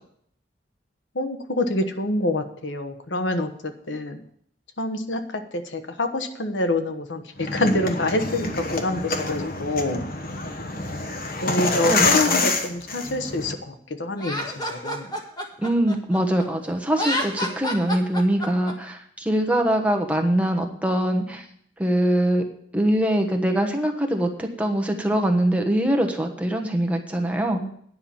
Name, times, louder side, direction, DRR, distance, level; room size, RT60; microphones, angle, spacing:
voice 1, 1.1-4.2 4.8-10.0 11.4-15.1 27.5-27.7, left 2 dB, 80° left, 8 dB, 1.1 m, -26 dB
sound 1, 7.4-13.5, left 3 dB, 55° left, 1.2 m, -26 dB
voice 2, 11.8-12.5 15.6-21.4 21.8-22.4 22.7-27.6, right 1 dB, 10° right, 3 dB, 1.2 m, -23 dB
Laughter, 14.2-16.4 16.9-18.7, equal, 20° left, 1.7 m, -29 dB
9.9 x 5.8 x 8.5 m, 0.65 s
head